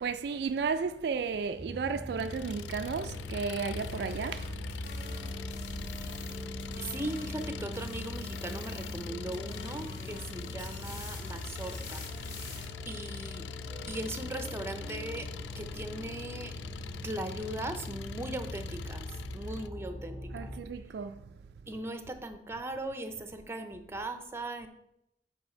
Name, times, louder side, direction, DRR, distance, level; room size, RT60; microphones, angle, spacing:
voice 1, 0.0-4.5 20.3-21.2, right 5 dB, 65° right, 0.3 m, -33 dB
sound 1, 1.6-20.6, equal, 20° left, 2.2 m, -43 dB
Engine, 2.2-19.7, left 6 dB, 85° left, 0.3 m, -42 dB
sound 2, 3.6-7.5 7.7-9.1 9.3-12.6, left 2 dB, 50° left, 2.3 m, -49 dB
voice 2, 6.5-12.1 12.4-13.4 13.9-15.3 15.6-16.5 17.0-20.5 20.8-20.9 21.7-24.7, right 1 dB, 15° right, 0.6 m, -39 dB
8.0 x 4.7 x 4.4 m
head